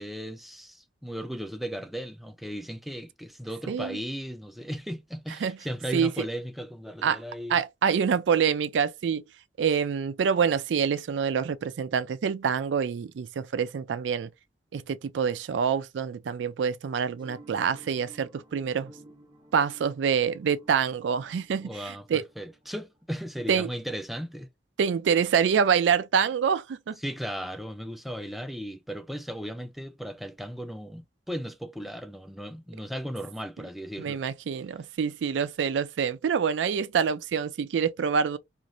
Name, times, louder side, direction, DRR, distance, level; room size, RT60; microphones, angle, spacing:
voice 1, 0.0-7.6 21.6-24.5 27.0-34.2, equal, ahead, 0.3 m, -36 dB
voice 2, 3.7-4.0 5.4-5.6 5.9-6.3 7.0-7.2 7.5-9.2 9.6-14.3 14.7-18.9 19.5-22.2 23.5-23.7 24.8-27.0 34.0-38.4, right 7 dB, 85° right, 0.4 m, -26 dB
sound 1, 17.2-23.4, right 1 dB, 30° right, 0.8 m, -54 dB
2.6 x 2.5 x 3.0 m
head